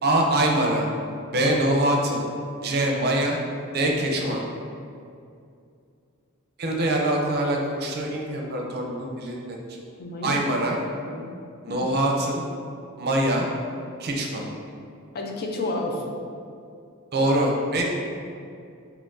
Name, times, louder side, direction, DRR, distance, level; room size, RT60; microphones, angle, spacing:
voice 1, 0.0-0.9 1.3-2.2 2.6-3.4 3.7-4.4 6.6-9.6 10.2-10.8 11.6-12.4 13.0-13.5 14.0-14.4 17.1-17.8, right 1 dB, 45° right, 0 dB, 0.6 m, -23 dB
voice 2, 10.0-10.4 11.0-11.3 11.7-11.8 15.1-16.2, left 2 dB, 45° left, 0 dB, 0.5 m, -30 dB
5.5 x 3.0 x 2.6 m, 2.4 s
head